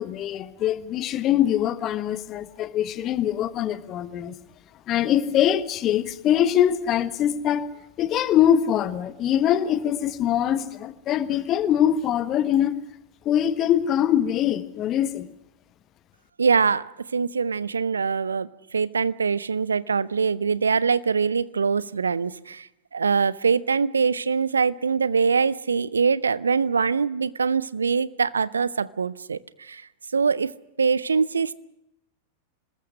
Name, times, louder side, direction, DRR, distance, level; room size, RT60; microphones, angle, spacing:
voice 1, 0.0-4.3 4.9-7.7 8.0-12.8 13.2-15.3, left 10 dB, 35° left, 1.4 m, -23 dB
voice 2, 16.4-16.8 17.1-18.5 18.7-22.6 22.9-29.4 29.7-29.8 30.1-30.5 30.8-31.5, right 5 dB, 75° right, 0.7 m, -23 dB
26.0 x 20.5 x 6.3 m
figure-of-eight pair, 90°, 0 cm